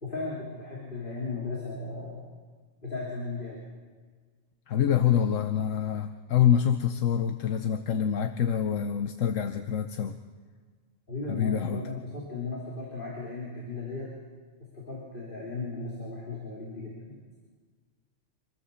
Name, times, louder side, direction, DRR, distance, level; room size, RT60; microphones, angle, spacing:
voice 1, 0.0-2.2 2.8-3.6 11.1-14.1 14.7-17.2, left 3 dB, 40° left, -5 dB, 3.9 m, -36 dB
voice 2, 4.7-10.2 11.3-11.8, left 9 dB, 85° left, 8 dB, 1.2 m, -26 dB
26.0 x 15.0 x 7.1 m, 1.5 s
omnidirectional pair, 1.3 m